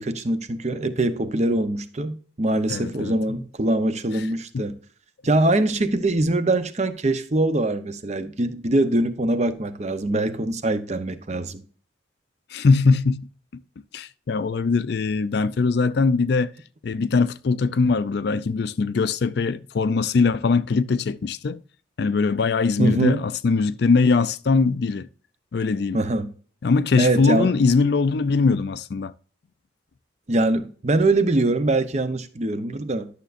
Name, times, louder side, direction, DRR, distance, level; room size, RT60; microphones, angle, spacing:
voice 1, 0.0-4.7 5.2-11.6 22.8-23.2 25.9-26.3 27.0-27.5 30.3-33.1, right 2 dB, 35° right, 0.7 m, -23 dB
voice 2, 2.7-3.2 4.5-4.7 12.5-13.3 13.5-13.6 13.9-16.5 16.8-21.6 22.0-25.1 25.5-26.0 26.6-29.1, left 4 dB, 55° left, 0.4 m, -21 dB
11.5 x 6.7 x 2.5 m
head